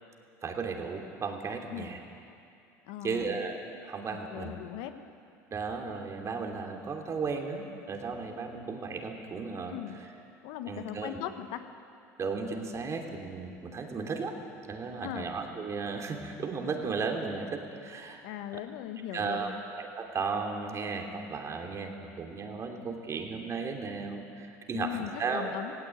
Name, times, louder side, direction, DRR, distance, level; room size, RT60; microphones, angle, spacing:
voice 1, 0.4-2.0 3.0-4.5 5.5-9.8 10.7-11.2 12.2-14.4 14.7-18.2 19.1-19.5 19.8-25.5, right 4 dB, 35° right, 3 dB, 3.0 m, -35 dB
voice 2, 2.8-3.4 4.3-5.0 9.7-10.0 10.4-11.6 15.0-15.3 18.2-19.6 24.7-25.7, left 11 dB, 70° left, 9 dB, 1.3 m, -38 dB
17.0 x 17.0 x 9.3 m, 2.6 s
hypercardioid pair, 85°, 8 cm